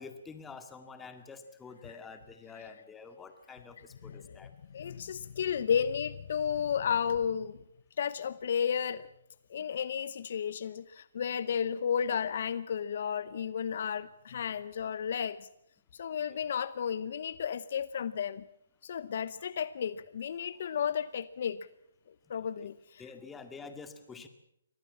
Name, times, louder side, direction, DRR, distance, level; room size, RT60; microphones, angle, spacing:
voice 1, 0.0-4.5 9.6-9.7 16.2-16.4 19.4-19.5 22.4-22.7 23.0-24.3, left 4 dB, 10° left, 8 dB, 2.0 m, -48 dB
voice 2, 4.7-7.6 8.0-9.1 9.5-15.5 15.9-18.4 18.8-21.7 22.3-23.0, left 7 dB, 55° left, 17 dB, 0.8 m, -33 dB
24.0 x 18.0 x 7.4 m, 0.79 s
hypercardioid pair, 150°, 0 cm